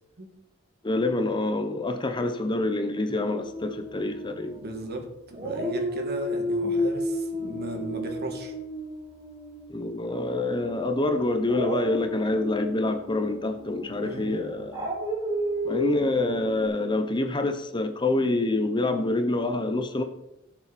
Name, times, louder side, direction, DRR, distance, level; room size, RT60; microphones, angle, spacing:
voice 1, 0.8-4.6 9.7-14.9 15.6-20.0, left 2 dB, 20° left, 7 dB, 0.8 m, -26 dB
Dog, 3.4-5.0 5.3-10.4 11.4-16.7, equal, 20° right, 3.9 m, -32 dB
voice 2, 4.5-8.5 14.0-14.6, right 1 dB, 50° right, 3 dB, 2.2 m, -36 dB
17.5 x 7.1 x 4.2 m, 0.88 s
head